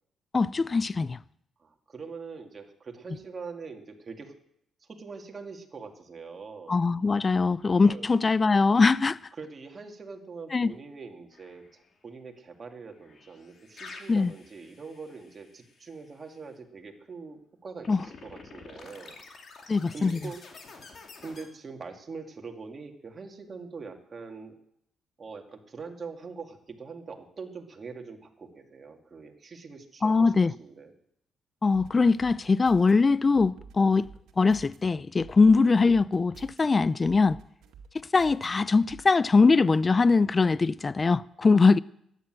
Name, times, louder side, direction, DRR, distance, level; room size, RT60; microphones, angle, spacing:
voice 1, 0.3-1.2 6.7-9.2 10.5-10.7 14.1-14.3 17.9-18.0 19.7-20.1 30.0-30.5 31.6-34.1 34.4-37.4 37.9-41.8, left 4 dB, 30° left, 0.4 m, -22 dB
voice 2, 1.6-4.3 4.8-6.8 7.8-8.1 9.4-19.2 19.9-20.4 21.2-24.6 25.2-30.3 30.6-30.9, right 4 dB, 35° right, 2.3 m, -43 dB
sound 1, 11.3-11.9 13.0-16.1 17.8-21.5, left 4 dB, 50° left, 2.6 m, -49 dB
sound 2, 31.7-32.9 33.3-34.8 35.2-36.6 37.0-38.5 38.9-39.0, right 6 dB, 85° right, 1.9 m, -49 dB
13.0 x 9.9 x 7.7 m
cardioid pair, 90°, 0 cm